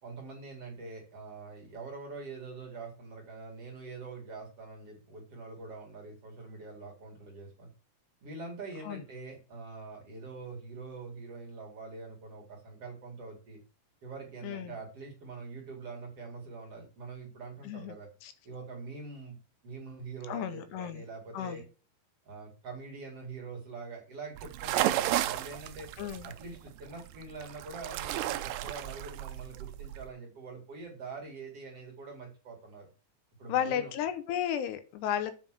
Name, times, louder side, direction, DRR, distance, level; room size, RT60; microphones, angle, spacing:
voice 1, 0.0-7.7 8.2-13.6 14.0-18.1 18.4-19.4 19.6-21.6 22.3-25.9 26.2-32.9 33.4-33.9, right 4 dB, 45° right, 0 dB, 2.4 m, -44 dB
voice 2, 14.4-14.7 17.7-17.9 18.2-18.3 20.3-21.0 21.3-21.6 26.0-26.3 33.5-35.3, left 10 dB, 80° left, 11 dB, 2.9 m, -33 dB
sound 1, 24.4-30.1, right 14 dB, 80° right, 2.3 m, -34 dB
7.3 x 5.6 x 6.1 m, 0.36 s
omnidirectional pair, 4.9 m